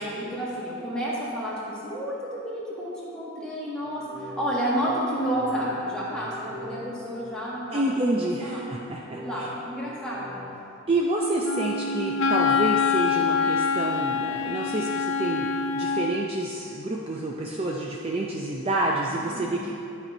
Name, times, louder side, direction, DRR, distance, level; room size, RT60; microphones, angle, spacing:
voice 1, 0.0-7.8 8.1-8.6 9.1-10.3 19.1-19.5, equal, 5° left, -8 dB, 1.6 m, -31 dB
sound 1, 3.8-8.1 9.0-10.8, left 1 dB, 55° right, 1.6 m, -44 dB
voice 2, 7.7-9.2 10.9-19.8, right 2 dB, 25° right, -2 dB, 0.5 m, -28 dB
Wind instrument woodwind instrument, 11.4-16.2, left 5 dB, 65° left, 0.5 m, -25 dB
11.5 x 4.3 x 5.4 m, 2.7 s
head